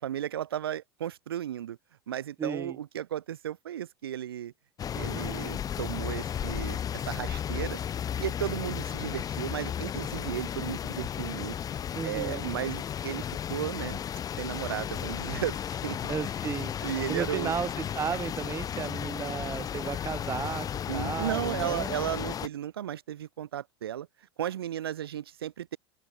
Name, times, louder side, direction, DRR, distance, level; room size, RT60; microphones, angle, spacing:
voice 1, 0.0-1.8 2.1-4.5 4.9-7.8 8.2-11.6 12.0-14.0 14.4-16.0 16.8-17.5 20.9-24.1 24.4-25.8, right 11 dB, 75° right, 1.4 m, -34 dB
voice 2, 2.4-2.8 11.9-12.5 16.1-16.7 17.1-22.0, right 7 dB, 20° right, 0.8 m, -34 dB
sound 1, 4.8-22.5, left 9 dB, 30° left, 0.8 m, -34 dB
open air
figure-of-eight pair, 80°, 13 cm